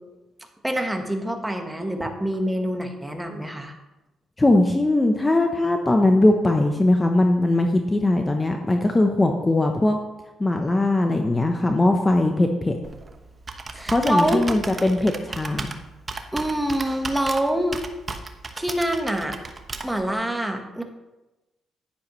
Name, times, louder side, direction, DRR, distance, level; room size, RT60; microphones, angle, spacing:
voice 1, 0.6-3.7 13.7-14.4 16.3-17.8 18.6-19.4 19.8-20.8, right 1 dB, 5° right, 4 dB, 1.4 m, -25 dB
voice 2, 4.4-10.0 10.4-12.8 13.9-15.7, left 2 dB, 20° left, 4 dB, 0.8 m, -20 dB
Computer keyboard, 12.8-20.1, right 3 dB, 30° right, 1.0 m, -35 dB
10.5 x 10.0 x 3.1 m, 1.0 s
cardioid pair, 90°, 0 cm